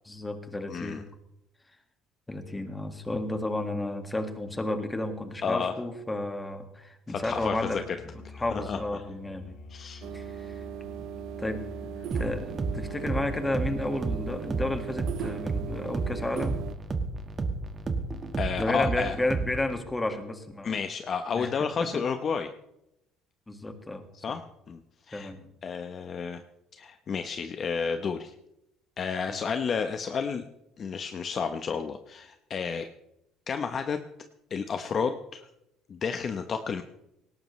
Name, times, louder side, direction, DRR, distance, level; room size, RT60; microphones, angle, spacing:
voice 1, 0.1-1.0 2.3-7.8 8.1-9.5 10.1-10.6 11.4-16.7 18.6-20.8 21.4-21.5 21.8-22.0 23.5-24.4 25.1-25.5 29.3-29.4, left 2 dB, 10° left, 6 dB, 1.7 m, -32 dB
voice 2, 0.7-1.0 5.4-5.7 7.1-8.0 8.7-8.8 9.7-10.1 18.4-19.2 20.6-22.5 24.2-24.4 24.7-24.8 25.1-25.3 25.6-26.4 26.7-28.3 29.0-30.4 30.8-32.9 33.5-34.0 34.5-35.5 35.9-36.8, left 6 dB, 35° left, 7 dB, 0.8 m, -31 dB
Musical instrument, 7.1-12.3, left 4 dB, 55° left, 2.2 m, -46 dB
sound 1, 10.0-16.7, right 12 dB, 60° right, 0.6 m, -39 dB
sound 2, 12.1-19.8, right 3 dB, 25° right, 1.6 m, -32 dB
18.5 x 18.0 x 3.2 m, 0.85 s
cardioid pair, 145°, 0 cm